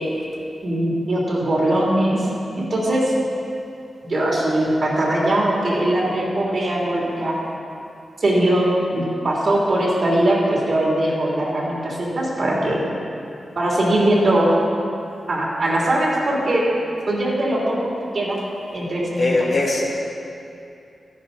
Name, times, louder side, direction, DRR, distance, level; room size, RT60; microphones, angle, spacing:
voice 1, 0.6-2.3 2.5-3.0 4.0-7.3 8.2-12.8 13.6-14.6 15.3-16.6 17.1-18.4 18.7-19.5, right 1 dB, 60° right, -4 dB, 3.0 m, -20 dB
voice 2, 19.2-19.9, left 2 dB, 55° left, -4 dB, 2.1 m, -20 dB
12.5 x 10.0 x 4.0 m, 2.6 s
cardioid pair, 70°, 0 cm